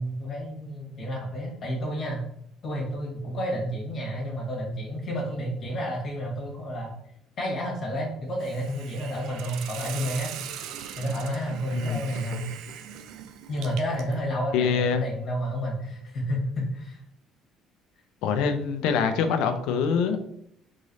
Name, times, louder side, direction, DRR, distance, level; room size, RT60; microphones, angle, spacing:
voice 1, 0.0-2.2 2.6-6.9 7.4-10.3 11.0-12.5 13.5-17.0, equal, 50° left, -1 dB, 1.5 m, -30 dB
Hiss, 8.4-14.2, right 9 dB, 75° right, 0.4 m, -40 dB
voice 2, 14.5-15.0 18.2-20.2, left 6 dB, 80° left, 8 dB, 0.6 m, -24 dB
3.7 x 3.1 x 4.0 m, 0.73 s
cardioid pair, 95°, 0 cm